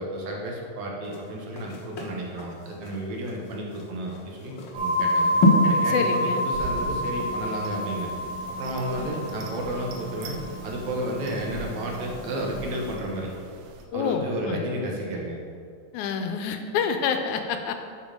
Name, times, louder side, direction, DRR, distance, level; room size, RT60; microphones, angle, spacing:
voice 1, 0.0-5.3 5.6-8.1 8.6-10.4 10.6-13.3 13.9-15.4, right 1 dB, 70° right, -1 dB, 2.4 m, -32 dB
sound 1, 1.0-9.6 10.0-10.1, left 1 dB, 65° left, 1.2 m, -29 dB
sound 2, 4.7-12.9, equal, 20° right, 2.3 m, -29 dB
voice 2, 5.9-6.5 13.9-14.7 15.9-17.7, left 6 dB, 80° left, 6 dB, 2.0 m, -27 dB
sound 3, 6.5-13.9, right 4 dB, 90° right, 2.5 m, -42 dB
10.0 x 5.3 x 5.1 m, 2.2 s
omnidirectional pair, 3.5 m